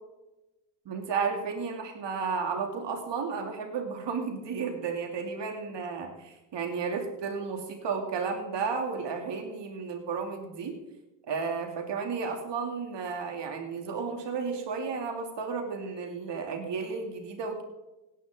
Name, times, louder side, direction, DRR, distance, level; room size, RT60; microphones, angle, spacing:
voice 1, 0.8-10.9 11.3-17.6, right 5 dB, 80° right, 3 dB, 2.8 m, -33 dB
17.5 x 10.0 x 3.8 m, 0.99 s
cardioid pair, 60°, 42 cm